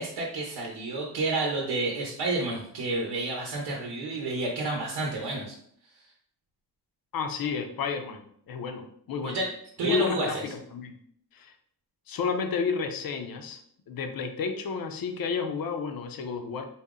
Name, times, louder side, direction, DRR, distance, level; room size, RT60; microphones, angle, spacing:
voice 1, 0.0-5.5 9.2-9.5 9.8-10.4, right 2 dB, 90° right, -1 dB, 0.8 m, -30 dB
voice 2, 7.1-9.4 9.8-10.4 10.7-10.9 11.3-11.5 12.1-13.6 13.9-16.7, left 5 dB, 65° left, 6 dB, 0.6 m, -31 dB
4.2 x 2.0 x 3.6 m, 0.65 s
wide cardioid pair, 135°, 38 cm